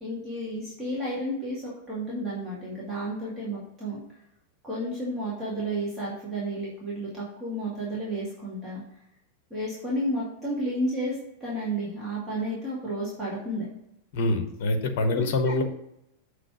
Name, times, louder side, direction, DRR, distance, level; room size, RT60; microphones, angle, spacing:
voice 1, 0.0-4.0 4.6-8.8 9.5-13.7 15.1-15.6, right 1 dB, 15° right, -8 dB, 2.2 m, -32 dB
voice 2, 14.1-15.6, left 2 dB, 50° left, 6 dB, 1.0 m, -25 dB
7.5 x 3.3 x 5.8 m, 0.81 s
figure-of-eight pair, 90°, 0 cm